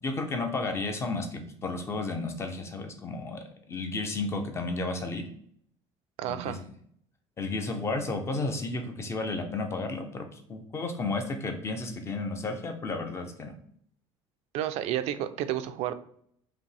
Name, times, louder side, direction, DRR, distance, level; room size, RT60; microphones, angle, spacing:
voice 1, 0.0-3.4 3.7-5.2 6.3-6.4 7.4-13.5, left 3 dB, 25° left, 5 dB, 0.7 m, -32 dB
voice 2, 6.2-6.6 14.5-15.9, right 12 dB, 70° right, 11 dB, 0.5 m, -31 dB
5.0 x 3.0 x 3.3 m, 0.66 s
cardioid pair, 155°, 11 cm